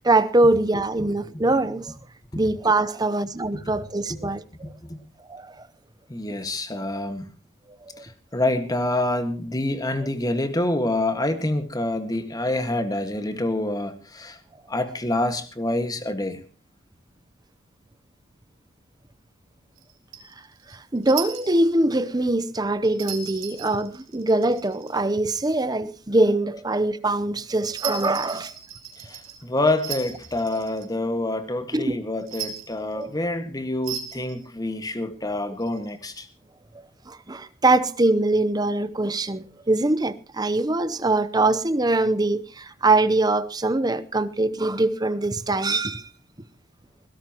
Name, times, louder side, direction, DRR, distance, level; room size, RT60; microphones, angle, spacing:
voice 1, 0.0-1.9 2.4-4.4 5.3-5.5 7.9-8.0 20.9-28.5 31.7-32.0 32.9-33.1 37.1-46.0, right 2 dB, 20° right, 0.8 m, -23 dB
voice 2, 4.6-5.0 6.1-7.3 8.0-14.4 14.7-16.4 29.0-36.3, left 1 dB, 20° left, 1.6 m, -27 dB
sound 1, 19.8-21.8 22.8-25.2 27.7-30.9 32.2-33.0 33.8-34.4 35.6-36.2, right 8 dB, 85° right, 2.5 m, -37 dB
20.5 x 17.0 x 3.0 m
head